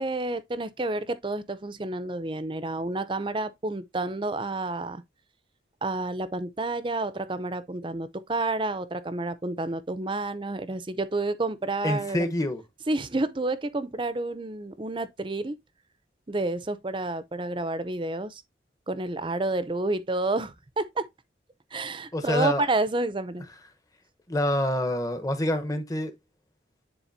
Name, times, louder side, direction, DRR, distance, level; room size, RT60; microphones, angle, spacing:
voice 1, 0.0-5.0 5.8-12.3 12.9-15.6 16.3-18.4 18.9-21.1 21.7-23.5, right 2 dB, 25° right, 0.6 m, -30 dB
voice 2, 11.8-12.6 22.1-22.6 24.3-26.1, left 1 dB, 20° left, 0.9 m, -26 dB
10.0 x 4.0 x 2.6 m
head